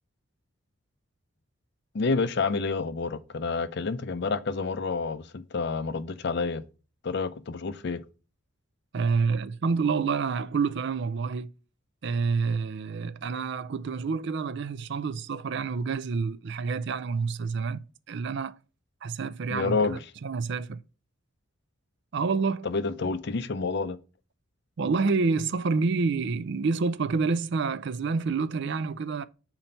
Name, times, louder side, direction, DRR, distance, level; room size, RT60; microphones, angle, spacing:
voice 1, 1.9-6.6 7.0-8.0 19.5-20.0 22.6-24.0, left 4 dB, 55° left, 0.5 m, -29 dB
voice 2, 8.9-11.5 12.0-18.6 19.0-20.8 22.1-22.7 24.8-29.2, right 4 dB, 60° right, 0.4 m, -28 dB
5.8 x 4.5 x 5.2 m
head